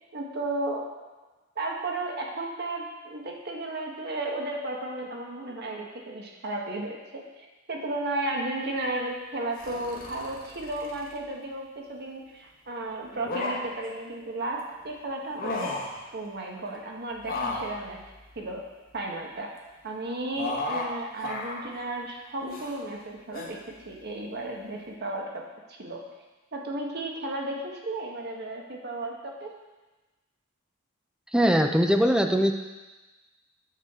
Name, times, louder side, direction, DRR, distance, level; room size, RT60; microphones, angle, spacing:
voice 1, 0.1-0.8 1.6-15.8 16.1-18.0 18.4-18.6 18.9-19.5 19.8-25.4 25.7-26.0 26.5-29.5, right 2 dB, 55° right, 0 dB, 1.2 m, -34 dB
sound 1, 9.6-11.2 13.0-13.9 15.2-16.0 17.2-19.0 20.4-20.9 21.2-21.7 22.4-22.8 23.3-23.5, left 2 dB, 45° left, 1.2 m, -35 dB
voice 2, 31.3-32.5, equal, 5° right, 5 dB, 0.5 m, -21 dB
9.2 x 6.5 x 3.6 m, 1.2 s
head